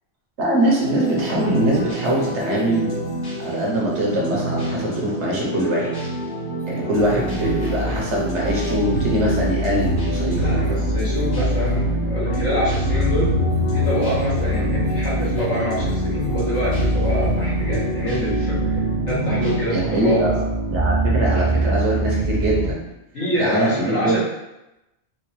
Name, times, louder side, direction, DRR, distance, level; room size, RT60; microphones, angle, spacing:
voice 1, 0.4-2.9 3.4-5.9 6.7-10.6 11.4-11.7 19.7-20.3 20.7-22.8 23.3-24.2, right 1 dB, 80° right, -3 dB, 1.3 m, -22 dB
sound 1, 0.8-19.7, right 1 dB, 60° left, 1.5 m, -28 dB
sound 2, 7.0-22.7, right 1 dB, 55° right, 0.5 m, -24 dB
voice 2, 10.3-13.4 13.7-18.8 19.1-20.3 23.1-24.2, equal, 90° left, -8 dB, 2.0 m, -26 dB
4.4 x 2.3 x 3.1 m, 0.94 s
omnidirectional pair, 1.2 m